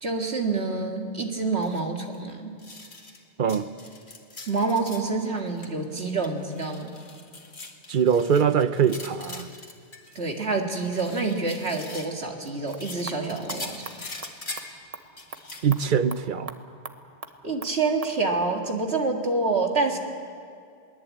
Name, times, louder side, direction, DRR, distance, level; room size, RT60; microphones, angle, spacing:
voice 1, 0.0-2.6 4.5-6.9 10.2-13.8 17.4-20.0, right 3 dB, 70° right, 2 dB, 2.3 m, -27 dB
sound 1, 1.6-1.8 2.1-2.2 2.6-3.2 3.5-5.1 5.4-5.7 6.0-10.5 10.8-12.1 12.6-14.8 15.2-15.9, left 2 dB, 45° left, 2.0 m, -42 dB
voice 2, 7.9-9.5 15.6-16.5, right 7 dB, 50° right, 12 dB, 0.8 m, -22 dB
sound 2, 12.4-18.2, right 3 dB, 35° right, 1.1 m, -43 dB
22.5 x 18.5 x 8.5 m, 2.3 s
omnidirectional pair, 1.1 m